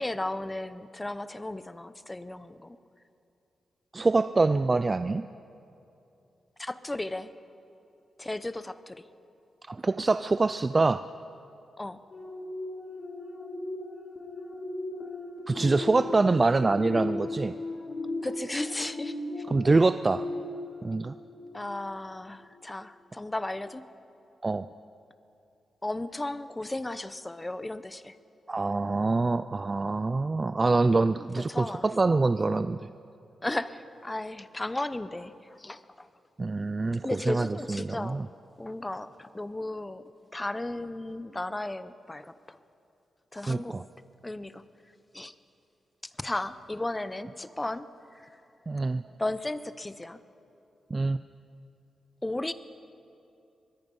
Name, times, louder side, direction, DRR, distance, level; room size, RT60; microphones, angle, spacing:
voice 1, 0.0-2.8 6.6-7.3 8.2-9.0 11.8-12.0 18.2-19.1 21.5-23.9 25.8-28.1 31.5-31.9 33.4-35.3 35.6-36.1 37.0-38.2 38.6-40.0 40.3-42.3 43.3-43.8 44.2-44.6 45.1-45.3 46.2-47.9 49.2-50.2 52.2-52.5, left 2 dB, 15° left, 13 dB, 0.8 m, -34 dB
voice 2, 3.9-5.3 9.7-11.0 15.5-17.5 19.5-20.2 20.8-21.1 24.4-24.7 28.5-32.8 36.4-38.3 43.5-43.8 48.7-49.0 50.9-51.2, right 3 dB, 30° right, 12 dB, 0.4 m, -25 dB
sound 1, 12.1-22.0 22.4-22.6, left 2 dB, 40° left, 3.4 m, -37 dB
23.5 x 20.5 x 5.5 m, 2.7 s
cardioid pair, 100°, 0 cm